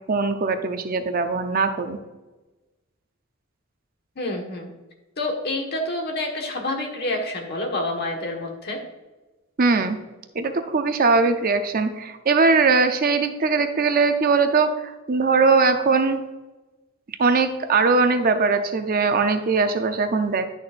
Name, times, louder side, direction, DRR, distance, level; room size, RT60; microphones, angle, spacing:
voice 1, 0.1-2.0 9.6-10.0 10.3-16.2 17.2-20.5, right 4 dB, 45° right, 7 dB, 0.6 m, -20 dB
voice 2, 4.1-4.7 5.2-8.8, left 1 dB, 50° left, 1 dB, 1.5 m, -28 dB
10.5 x 6.4 x 2.5 m, 1.2 s
head